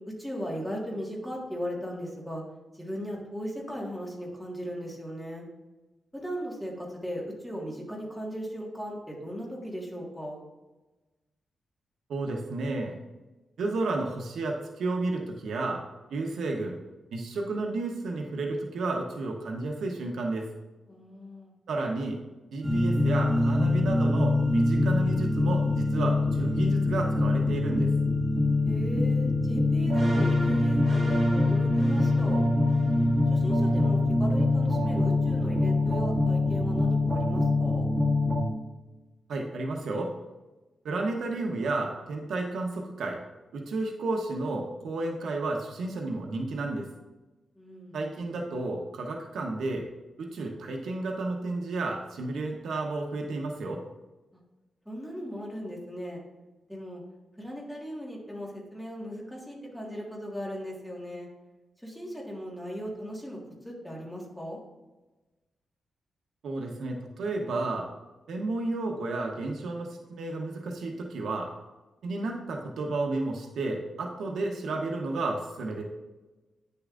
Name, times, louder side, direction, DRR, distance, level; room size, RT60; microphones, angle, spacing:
voice 1, 0.2-2.4 2.7-5.4 6.1-10.4 20.9-21.5 28.6-32.4 33.3-37.9 47.5-48.0 54.8-56.2 56.7-57.0 57.4-61.3 61.8-63.4 63.6-64.6, equal, ahead, -3 dB, 1.7 m, -37 dB
voice 2, 12.1-13.0 13.6-15.8 16.1-16.8 17.1-20.5 21.7-22.2 22.5-27.9 39.3-40.2 40.8-43.2 43.5-46.9 47.9-49.9 50.2-53.8 66.4-67.9 68.3-71.5 72.0-75.8, right 2 dB, 80° right, 1 dB, 0.9 m, -32 dB
sound 1, 22.6-38.4, left 2 dB, 25° right, 2.0 m, -24 dB
9.3 x 6.8 x 2.5 m, 1.1 s
wide cardioid pair, 160°, 0 cm